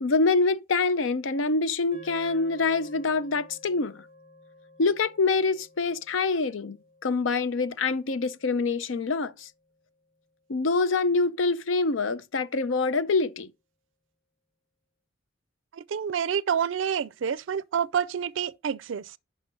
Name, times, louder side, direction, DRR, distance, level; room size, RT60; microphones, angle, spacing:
voice 1, 0.0-4.0 4.8-9.5 10.5-13.5, left 3 dB, 85° left, 0.6 m, -25 dB
sound 1, 1.9-10.3, left 1 dB, 40° left, 3.4 m, -54 dB
voice 2, 15.8-19.0, right 7 dB, 80° right, 0.4 m, -28 dB
5.7 x 5.4 x 6.0 m
head